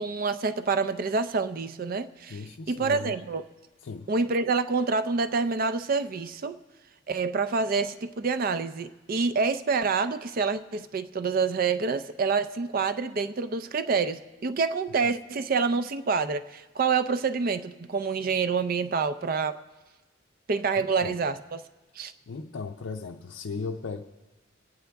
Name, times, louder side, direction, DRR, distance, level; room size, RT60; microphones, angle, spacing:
voice 1, 0.0-2.4 2.7-3.4 4.1-6.6 7.1-19.6 20.5-21.6 22.0-22.1, right 4 dB, 45° right, 13 dB, 0.4 m, -27 dB
voice 2, 2.3-3.2 3.8-4.1 20.8-21.2 22.3-24.0, left 4 dB, 75° left, 2 dB, 0.5 m, -37 dB
22.0 x 9.3 x 3.4 m, 1.2 s
head